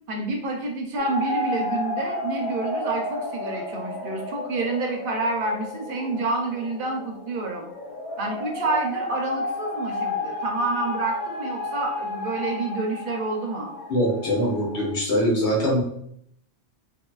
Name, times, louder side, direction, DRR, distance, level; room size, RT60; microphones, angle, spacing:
voice 1, 0.1-7.6 8.2-13.7, right 3 dB, 60° right, 1 dB, 0.7 m, -28 dB
sound 1, 1.0-15.0, left 2 dB, 55° left, 0.4 m, -32 dB
voice 2, 13.9-15.8, equal, 85° left, -4 dB, 1.3 m, -22 dB
2.8 x 2.8 x 2.3 m, 0.68 s
omnidirectional pair, 1.1 m